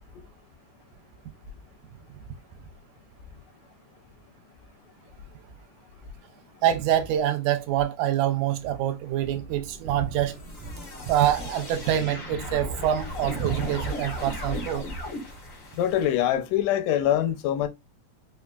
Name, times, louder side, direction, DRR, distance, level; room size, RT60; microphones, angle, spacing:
voice 1, 6.6-10.3 10.6-10.7 11.1-14.8, right 11 dB, 80° right, 2.0 m, -25 dB
sound 1, 9.2-16.3, left 1 dB, 65° left, 0.7 m, -36 dB
voice 2, 15.8-17.7, left 11 dB, 85° left, 2.1 m, -24 dB
5.2 x 2.4 x 2.2 m
omnidirectional pair, 3.6 m